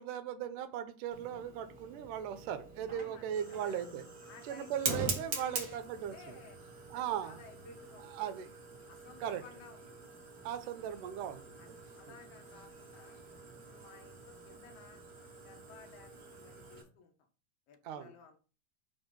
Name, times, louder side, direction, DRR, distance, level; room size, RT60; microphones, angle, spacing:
voice 1, 0.0-4.0 4.4-6.4 6.9-7.4 8.1-8.5 9.2-9.4 10.4-11.8 12.1-12.2 17.8-18.1, right 9 dB, 80° right, 2.2 m, -38 dB
Fire, 1.1-16.8, right 4 dB, 60° right, 0.9 m, -44 dB
voice 2, 2.9-3.9 4.2-6.6 6.9-8.1 8.9-10.0 11.6-13.2 13.6-15.0 15.4-17.1 17.7-18.4, left 5 dB, 60° left, 2.0 m, -56 dB
5.9 x 4.5 x 5.1 m
omnidirectional pair, 3.9 m